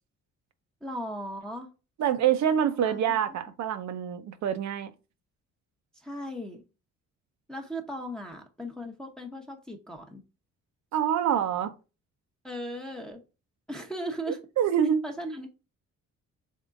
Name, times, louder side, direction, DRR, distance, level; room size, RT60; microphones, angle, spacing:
voice 1, 0.8-1.7 2.8-3.0 3.3-3.4 6.0-6.6 7.5-10.2 12.4-13.2 13.7-14.4 15.0-15.5, equal, ahead, 0.7 m, -37 dB
voice 2, 2.0-4.9 10.9-11.7 14.6-15.0, right 9 dB, 65° right, 0.7 m, -26 dB
3.7 x 3.6 x 2.5 m
cardioid pair, 90°, 30 cm